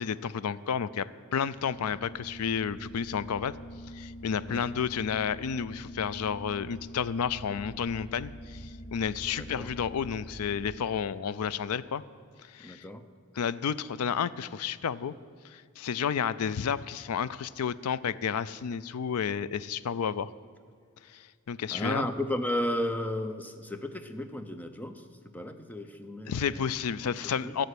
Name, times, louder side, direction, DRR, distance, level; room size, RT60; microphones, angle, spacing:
voice 1, 0.0-3.5 3.9-12.0 12.4-12.9 13.3-15.1 15.4-20.3 21.1-22.1 26.3-27.6, left 7 dB, 85° left, 17 dB, 0.4 m, -31 dB
sound 1, 1.5-10.8, equal, 70° left, 0.9 m, -45 dB
voice 2, 9.3-9.7 12.6-13.1 21.7-25.0 25.3-26.7 27.0-27.1 27.4-27.6, left 1 dB, 5° left, 8 dB, 0.6 m, -34 dB
12.5 x 7.8 x 8.3 m, 2.1 s
head